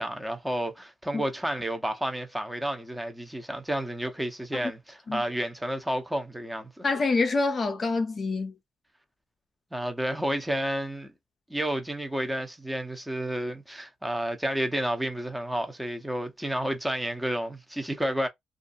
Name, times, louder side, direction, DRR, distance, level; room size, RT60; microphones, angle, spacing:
voice 1, 0.0-6.8 9.7-11.1 11.5-18.3, right 1 dB, 5° right, 0.8 m, -31 dB
voice 2, 6.8-8.5, left 3 dB, 40° left, 0.5 m, -26 dB
2.5 x 2.4 x 2.6 m
cardioid pair, 90°, 0 cm